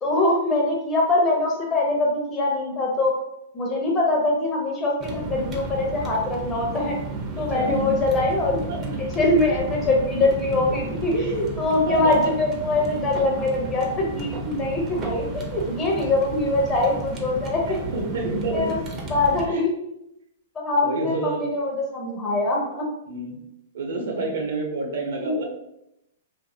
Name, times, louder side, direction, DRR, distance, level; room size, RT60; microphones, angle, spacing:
voice 1, 0.0-3.1 3.5-7.0 7.4-8.6 9.0-18.0 18.5-18.8 19.1-19.7 20.5-22.8 25.2-25.4, left 2 dB, 20° left, -1 dB, 0.7 m, -23 dB
sound 1, 5.0-19.5, right 2 dB, 25° right, 0.5 m, -33 dB
voice 2, 7.3-7.9 8.7-8.8 10.2-10.7 11.1-11.3 11.7-12.2 17.7-18.7 19.5-19.7 20.8-21.5 23.1-23.4 23.7-25.4, right 2 dB, 70° right, 2 dB, 0.7 m, -29 dB
2.7 x 2.5 x 2.6 m, 0.83 s
hypercardioid pair, 135°, 0 cm